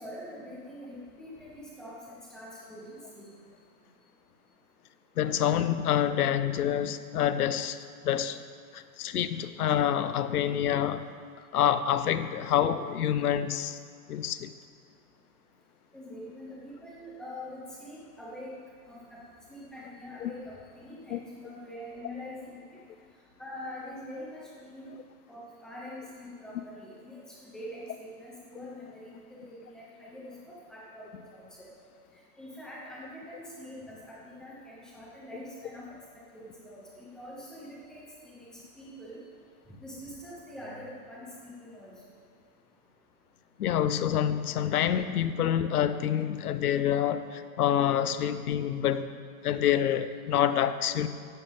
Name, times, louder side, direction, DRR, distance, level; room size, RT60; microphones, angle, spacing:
voice 1, 0.0-3.3 15.9-18.5 18.9-19.2 19.5-22.8 23.4-24.9 25.3-31.5 32.4-35.9 36.3-38.5 38.8-39.2 39.8-41.9, left 1 dB, ahead, -6 dB, 0.7 m, -44 dB
voice 2, 5.2-7.8 8.0-8.4 8.7-11.0 11.5-13.8 14.1-14.5 20.2-20.3 21.1-21.2 43.6-49.1 49.4-51.1, left 10 dB, 75° left, 12 dB, 0.9 m, -27 dB
16.0 x 11.5 x 3.6 m, 2.1 s
supercardioid pair, 175°, 45 cm